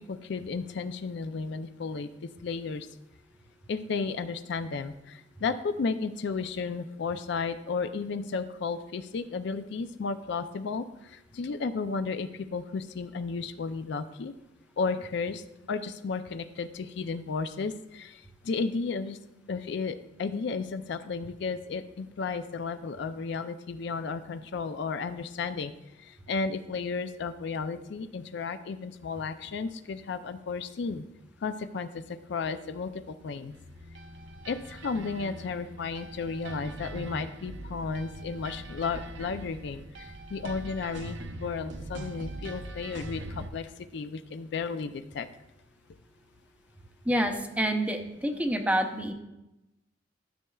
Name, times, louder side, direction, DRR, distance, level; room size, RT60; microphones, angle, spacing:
voice 1, 0.0-2.9 3.7-14.3 14.8-19.2 19.5-25.7 26.0-31.1 31.4-33.5 34.5-45.3, left 4 dB, 60° left, 11 dB, 0.4 m, -33 dB
sound 1, 33.5-43.5, right 1 dB, 65° right, 0.7 m, -42 dB
voice 2, 47.1-49.1, right 1 dB, 5° right, 5 dB, 0.6 m, -27 dB
13.0 x 6.6 x 2.3 m, 0.94 s
head